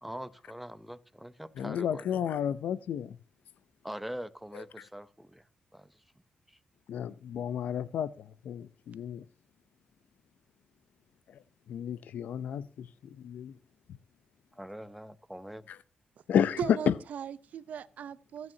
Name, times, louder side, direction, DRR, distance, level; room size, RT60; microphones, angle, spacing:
voice 1, 0.0-2.0 3.8-5.4 5.7-5.9 6.5-6.6 14.6-15.7, equal, 5° right, 0.7 m, -43 dB
voice 2, 1.6-3.2 4.5-4.8 6.9-9.2 11.7-13.6 15.7-15.8 16.3-16.6 16.9-17.0, left 9 dB, 75° left, 0.6 m, -32 dB
voice 3, 16.6-18.5, right 8 dB, 65° right, 0.7 m, -38 dB
27.0 x 9.3 x 2.8 m
cardioid pair, 125°, 3 cm